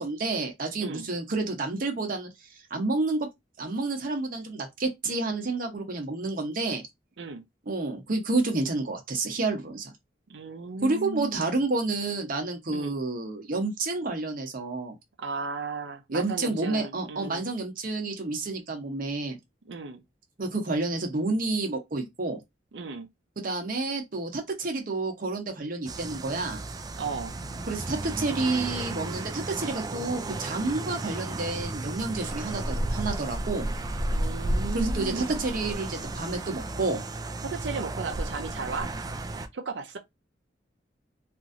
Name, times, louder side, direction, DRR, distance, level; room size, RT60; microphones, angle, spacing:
voice 1, 0.0-2.3 2.7-3.3 3.6-6.8 7.7-9.9 10.8-14.9 16.1-19.4 20.4-22.4 23.4-26.6 27.7-33.7 34.7-37.0, right 3 dB, 50° right, 0.9 m, -29 dB
voice 2, 10.3-11.6 12.7-12.9 15.2-17.5 19.7-20.0 22.7-23.1 27.0-27.3 34.1-35.4 37.4-38.9 39.5-40.0, right 4 dB, 75° right, 0.6 m, -35 dB
sound 1, 25.9-39.5, right 2 dB, 20° right, 0.3 m, -33 dB
3.0 x 2.6 x 2.5 m
head